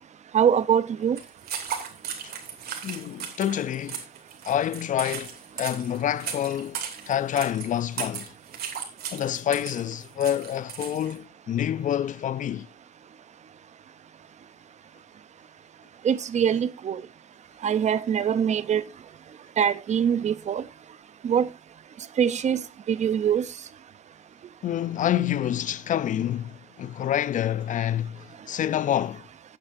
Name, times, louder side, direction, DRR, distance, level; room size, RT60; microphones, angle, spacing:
voice 1, 0.3-1.2 16.0-17.0 17.6-18.8 19.6-20.6 21.2-21.5 22.2-22.6 22.9-23.5, right 8 dB, 45° right, 0.7 m, -23 dB
sound 1, 1.2-11.2, right 7 dB, 80° right, 2.8 m, -36 dB
voice 2, 2.8-4.0 4.5-5.3 5.6-6.8 7.1-8.3 9.1-12.7 24.6-29.3, left 10 dB, 55° left, 0.5 m, -27 dB
14.5 x 8.6 x 2.6 m
wide cardioid pair, 155°, 16 cm